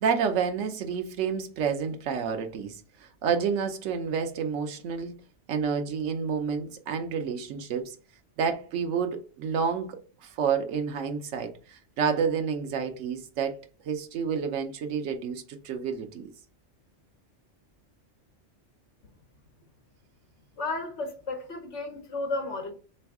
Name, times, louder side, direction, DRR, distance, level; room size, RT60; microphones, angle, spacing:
voice 1, 0.0-5.1 5.5-8.0 8.4-16.3, right 6 dB, 85° right, 1.0 m, -29 dB
voice 2, 20.6-22.7, left 2 dB, 70° left, 1.2 m, -33 dB
3.4 x 3.1 x 4.6 m
omnidirectional pair, 1.2 m